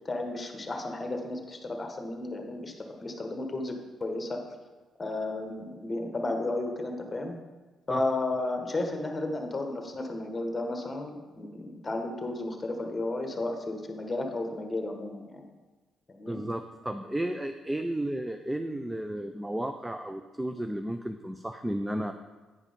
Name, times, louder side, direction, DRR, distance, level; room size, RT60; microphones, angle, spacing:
voice 1, 0.0-2.7 3.0-4.4 5.0-7.3 7.9-15.4 16.1-16.4, left 2 dB, 25° left, 3 dB, 1.4 m, -33 dB
voice 2, 16.3-22.1, right 1 dB, 10° right, 7 dB, 0.4 m, -33 dB
9.6 x 4.9 x 5.2 m, 1.3 s
cardioid pair, 90°, 0 cm